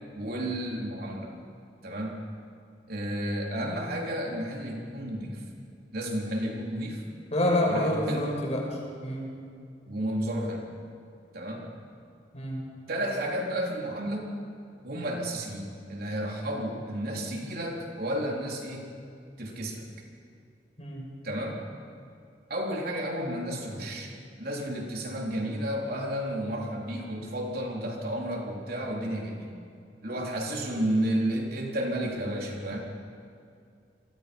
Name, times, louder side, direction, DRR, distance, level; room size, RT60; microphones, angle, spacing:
voice 1, 0.1-1.4 1.8-2.2 2.9-5.4 5.9-7.0 7.7-8.3 9.9-10.7 11.3-11.7 12.9-14.4 14.8-18.9 19.4-19.9 21.2-21.6 22.5-24.1 24.4-29.5 30.0-32.8, right 1 dB, 55° right, -1 dB, 3.8 m, -32 dB
voice 2, 7.3-8.6 9.0-9.3 12.3-12.6 20.8-21.1, left 1 dB, 40° left, -1 dB, 6.0 m, -27 dB
29.5 x 23.5 x 5.4 m, 2.4 s
head